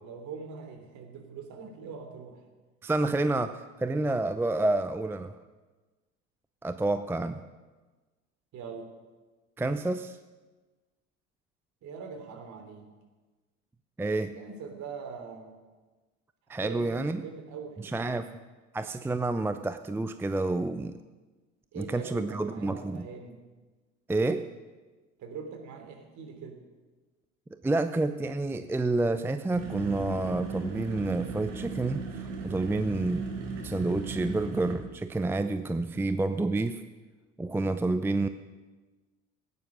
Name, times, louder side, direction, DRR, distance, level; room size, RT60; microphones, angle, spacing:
voice 1, 0.0-2.4 8.5-8.9 11.8-12.9 14.3-15.5 16.5-18.4 21.7-23.4 25.2-26.6, right 5 dB, 50° right, 4 dB, 3.3 m, -43 dB
voice 2, 2.8-5.3 6.6-7.4 9.6-10.2 14.0-14.4 16.5-17.2 17.8-18.3 18.7-21.0 21.8-23.1 24.1-24.5 27.6-33.3 33.6-36.8 37.4-38.3, right 2 dB, 5° right, 10 dB, 0.6 m, -29 dB
sound 1, 29.5-34.8, right 4 dB, 70° right, 3.1 m, -37 dB
17.0 x 9.5 x 6.3 m, 1.3 s
hypercardioid pair, 70°, 38 cm